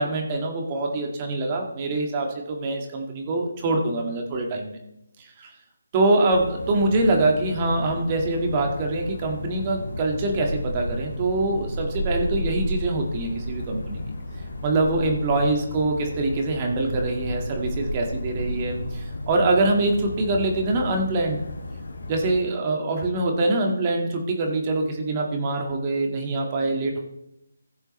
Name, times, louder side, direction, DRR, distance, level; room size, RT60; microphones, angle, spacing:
voice 1, 0.0-4.8 5.2-5.5 5.9-14.0 14.6-21.4 22.1-27.0, right 2 dB, 25° right, 2 dB, 1.8 m, -24 dB
sound 1, 6.3-22.4, left 1 dB, 65° left, 2.1 m, -33 dB
16.0 x 7.0 x 3.2 m, 0.83 s
figure-of-eight pair, 160°, 0 cm